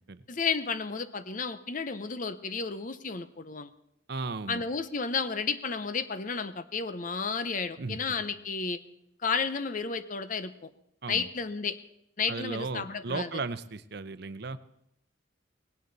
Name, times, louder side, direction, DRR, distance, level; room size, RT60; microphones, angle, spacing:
voice 1, 0.3-3.7 4.5-8.8 9.2-10.7 11.1-11.8 12.2-13.3, left 5 dB, 40° left, 12 dB, 0.7 m, -32 dB
voice 2, 4.1-4.6 7.8-8.0 11.0-11.3 12.3-14.6, right 3 dB, 55° right, 13 dB, 0.7 m, -35 dB
19.0 x 17.0 x 4.1 m, 0.78 s
head